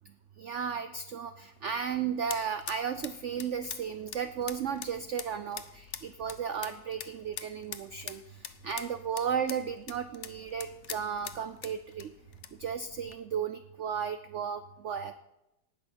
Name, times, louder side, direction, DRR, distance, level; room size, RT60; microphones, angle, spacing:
voice 1, 0.4-12.1 12.5-15.2, right 7 dB, 85° right, 11 dB, 0.6 m, -34 dB
sound 1, 1.5-13.2, left 9 dB, 60° left, 0.8 m, -46 dB
18.5 x 6.4 x 5.9 m, 0.91 s
omnidirectional pair, 1.9 m